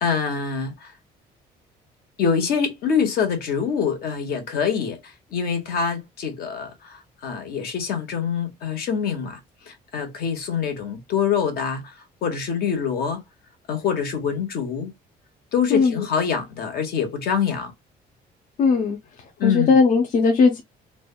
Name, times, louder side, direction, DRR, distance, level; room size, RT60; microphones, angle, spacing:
voice 1, 0.0-1.0 2.2-13.2 13.7-14.9 15.5-17.7 19.4-19.7, left 6 dB, 65° left, 1.1 m, -25 dB
voice 2, 18.6-19.0 19.4-20.6, left 4 dB, 50° left, 0.6 m, -18 dB
3.3 x 2.2 x 2.3 m
cardioid pair, 110°, 17 cm